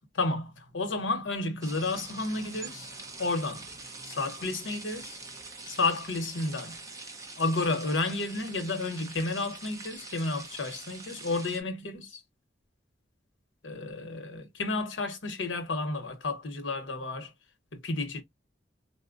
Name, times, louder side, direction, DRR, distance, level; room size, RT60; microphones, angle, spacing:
voice 1, 0.1-2.9 3.2-3.7 4.1-5.2 5.7-6.8 7.4-12.2 13.6-17.3 17.7-18.2, left 3 dB, 75° left, 0.9 m, -31 dB
sound 1, 1.6-11.6, right 3 dB, 20° right, 0.8 m, -44 dB
4.1 x 2.1 x 2.5 m
head